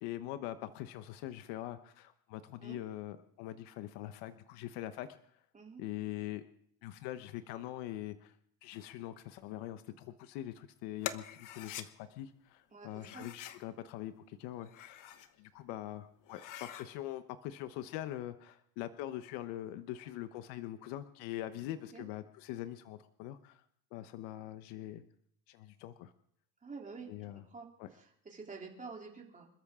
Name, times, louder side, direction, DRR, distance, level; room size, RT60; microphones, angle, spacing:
voice 1, 0.0-5.1 5.8-6.4 6.8-8.4 8.6-15.1 15.4-23.6 23.9-25.0 25.5-26.1 27.1-27.4 27.8-27.9, left 13 dB, 80° left, 10 dB, 1.1 m, -43 dB
sound 1, 11.0-11.9 13.0-13.6 14.5-15.3 15.7-15.8 16.2-16.9, left 11 dB, 50° left, 1.2 m, -44 dB
voice 2, 12.7-13.3 21.7-22.0 26.6-27.1 27.3-29.5, right 4 dB, 20° right, 0 dB, 3.3 m, -49 dB
27.0 x 13.5 x 3.7 m, 0.66 s
cardioid pair, 135°, 41 cm